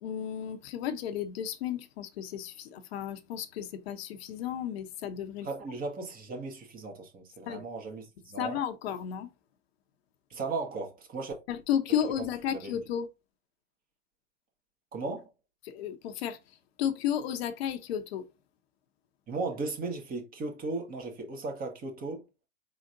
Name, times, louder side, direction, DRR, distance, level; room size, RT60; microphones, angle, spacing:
voice 1, 0.0-5.5 7.4-7.6 8.4-9.3 11.5-13.1 15.6-16.4 16.8-18.2, left 9 dB, 55° left, 0.9 m, -33 dB
voice 2, 5.4-8.6 10.3-11.3 12.2-12.7 14.9-15.3 19.3-22.2, right 3 dB, 25° right, 1.6 m, -36 dB
5.0 x 3.9 x 2.6 m
hypercardioid pair, 115°, 36 cm